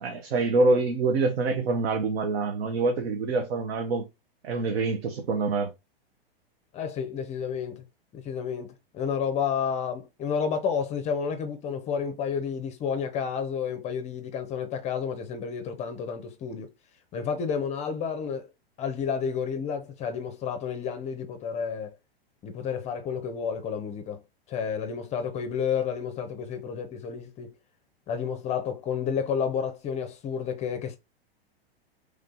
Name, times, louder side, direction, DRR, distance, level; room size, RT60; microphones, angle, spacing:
voice 1, 0.0-4.1 4.4-5.7, right 3 dB, 80° right, 0.8 m, -25 dB
voice 2, 6.7-7.8 8.1-16.7 17.1-18.5 18.8-21.9 22.4-24.2 24.5-27.5 28.1-31.0, left 7 dB, 20° left, 0.5 m, -30 dB
3.2 x 2.7 x 3.6 m
hypercardioid pair, 125°, 30 cm